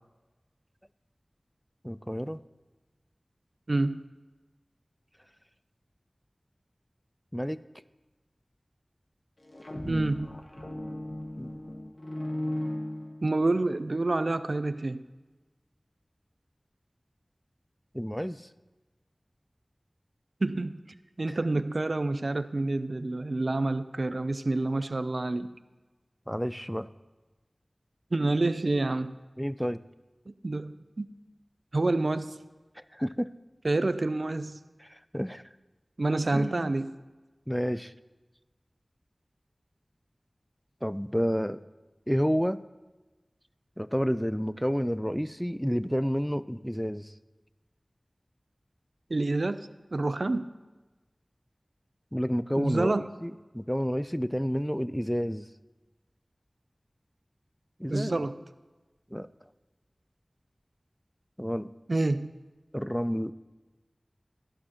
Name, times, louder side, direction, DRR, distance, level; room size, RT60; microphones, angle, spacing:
voice 1, 1.8-2.4 7.3-7.6 9.8-10.3 11.4-11.5 17.9-18.5 21.3-21.4 26.3-26.9 29.4-29.8 32.8-33.3 34.8-35.4 36.3-36.7 37.5-37.9 40.8-41.6 42.1-42.6 43.8-47.1 52.1-52.9 53.2-55.5 57.8-58.3 59.1-59.3 61.4-61.7 62.7-63.3, equal, 5° left, 15 dB, 0.3 m, -30 dB
voice 2, 3.7-4.0 9.9-10.4 13.2-15.0 20.4-20.8 21.2-25.5 28.1-29.1 30.3-31.1 31.7-32.4 33.6-34.6 36.0-36.9 49.1-49.6 49.9-50.4 52.6-53.0 57.9-58.3 61.9-62.4, right 2 dB, 70° right, 13 dB, 0.4 m, -28 dB
sound 1, 9.4-13.6, left 1 dB, 55° left, 1.1 m, -36 dB
12.0 x 11.0 x 2.9 m, 1.2 s
wide cardioid pair, 40°, 0 cm